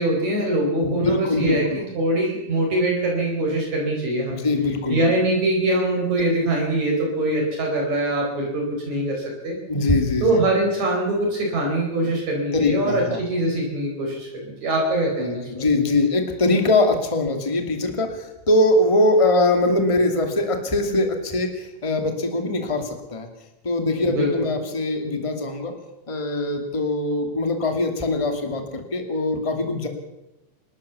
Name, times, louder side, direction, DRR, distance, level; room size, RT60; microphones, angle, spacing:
voice 1, 0.0-4.5 4.9-9.6 10.2-15.6 24.0-24.5, right 1 dB, 55° right, -1 dB, 5.6 m, -23 dB
voice 2, 0.8-1.9 4.4-5.1 9.7-10.4 12.5-13.2 15.2-23.3 23.6-25.7 26.1-29.9, left 2 dB, 10° left, 5 dB, 2.0 m, -22 dB
29.0 x 13.0 x 7.0 m, 0.94 s
omnidirectional pair, 3.9 m